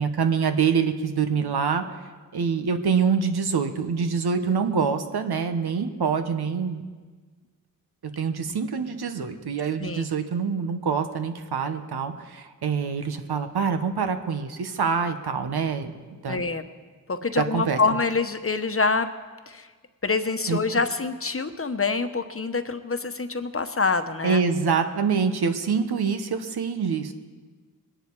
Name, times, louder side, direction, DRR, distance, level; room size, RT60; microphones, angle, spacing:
voice 1, 0.0-2.0 2.3-6.9 8.2-15.9 16.2-16.4 17.4-17.8 20.5-20.6 24.2-27.1, right 6 dB, 85° right, 8 dB, 1.2 m, -25 dB
voice 2, 16.3-16.6 17.1-19.1 19.5-19.7 20.0-24.4, left 4 dB, 35° left, 9 dB, 1.0 m, -26 dB
21.0 x 10.5 x 4.7 m, 1.4 s
cardioid pair, 50°, 37 cm